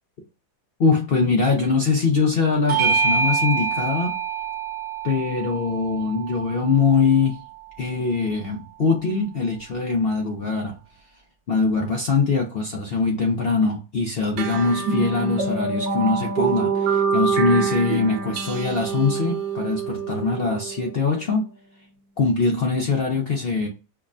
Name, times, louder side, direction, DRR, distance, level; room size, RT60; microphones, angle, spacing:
voice 1, 0.8-4.2 5.0-7.4 7.8-10.8 11.5-21.4 22.2-23.7, left 4 dB, 60° left, 0.6 m, -22 dB
Bell / Doorbell, 2.7-7.5, right 5 dB, 45° right, 0.9 m, -26 dB
sound 1, 14.4-21.2, right 5 dB, 85° right, 1.2 m, -25 dB
5.6 x 2.1 x 2.4 m
omnidirectional pair, 1.7 m